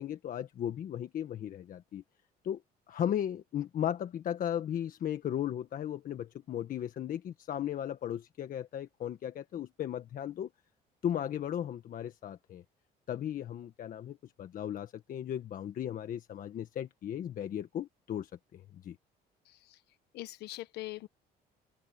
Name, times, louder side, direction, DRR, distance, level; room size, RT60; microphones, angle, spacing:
voice 1, 0.0-2.0 2.4-2.6 2.9-10.5 11.0-12.6 13.1-19.0, left 10 dB, 55° left, 1.5 m, -36 dB
voice 2, 19.4-19.8 20.1-21.1, left 17 dB, 80° left, 1.3 m, -42 dB
cardioid pair, 110°, 17 cm